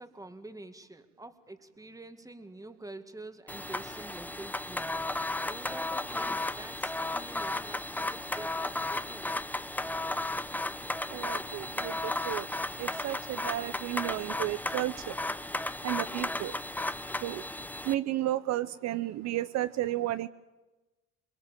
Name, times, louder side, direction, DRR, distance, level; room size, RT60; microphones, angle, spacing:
voice 1, 0.0-4.9 5.4-9.3, right 2 dB, 10° right, 8 dB, 2.0 m, -47 dB
sound 1, 3.5-17.9, left 2 dB, 5° left, 0.7 m, -34 dB
voice 2, 11.1-12.5 12.8-15.2 15.8-16.5 17.2-17.4 17.8-20.3, right 14 dB, 65° right, 13 dB, 0.7 m, -33 dB
23.0 x 22.5 x 7.4 m, 1.1 s
supercardioid pair, 85°, 29 cm